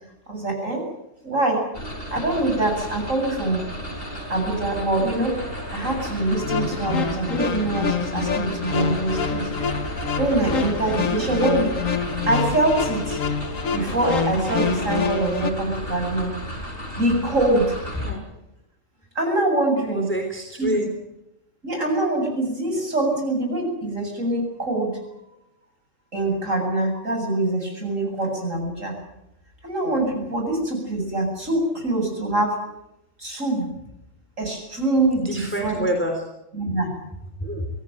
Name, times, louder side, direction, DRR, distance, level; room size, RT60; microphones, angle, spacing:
voice 1, 0.3-0.9 1.2-1.7 2.1-3.6 4.3-5.4 5.7-9.5 10.2-11.8 12.3-13.2 13.7-16.3 17.0-17.8 19.1-20.1 20.6-20.8 21.6-25.0 26.1-29.0 29.6-32.6 33.2-33.7 34.4-35.8 36.5-36.9, right 2 dB, 80° right, 2 dB, 8.3 m, -24 dB
sound 1, 1.7-18.1, equal, 45° left, 5.7 m, -33 dB
sound 2, 6.3-15.5, left 6 dB, 85° left, 1.8 m, -27 dB
voice 2, 19.9-20.9 35.2-36.2 37.4-37.7, equal, 10° left, 3 dB, 3.8 m, -27 dB
24.0 x 17.0 x 9.0 m, 0.87 s
omnidirectional pair, 1.3 m